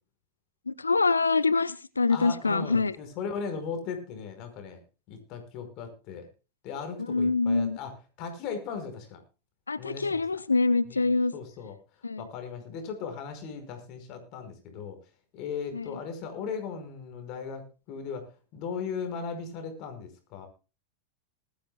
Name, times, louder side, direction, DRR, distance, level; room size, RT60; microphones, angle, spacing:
voice 1, 0.7-3.0 7.1-7.8 9.7-11.3 12.0-12.2 15.7-15.9, left 4 dB, 80° left, 18 dB, 0.7 m, -25 dB
voice 2, 2.1-4.8 5.1-6.3 6.6-9.2 9.8-10.2 10.9-11.1 11.3-11.8 12.2-15.0 15.3-20.5, left 5 dB, 40° left, 7 dB, 5.1 m, -37 dB
20.5 x 14.0 x 2.3 m, 0.32 s
figure-of-eight pair, 90°, 0 cm